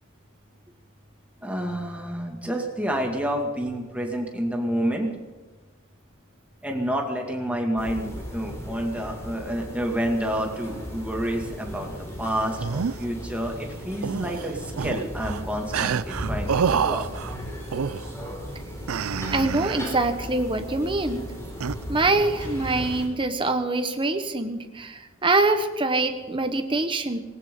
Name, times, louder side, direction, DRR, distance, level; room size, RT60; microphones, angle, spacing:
voice 1, 1.4-5.1 6.6-11.9 12.2-17.1, equal, 5° right, 0 dB, 2.3 m, -29 dB
sound 1, 7.8-23.1, equal, 15° left, 3.9 m, -36 dB
sound 2, 12.3-13.1 14.0-15.4 15.7-17.3 17.7-18.1 18.9-20.0 21.6-21.8, right 6 dB, 85° right, 0.5 m, -28 dB
voice 2, 19.3-21.2 21.9-27.2, right 2 dB, 25° right, 7 dB, 1.3 m, -24 dB
19.5 x 18.0 x 3.9 m, 1.3 s
head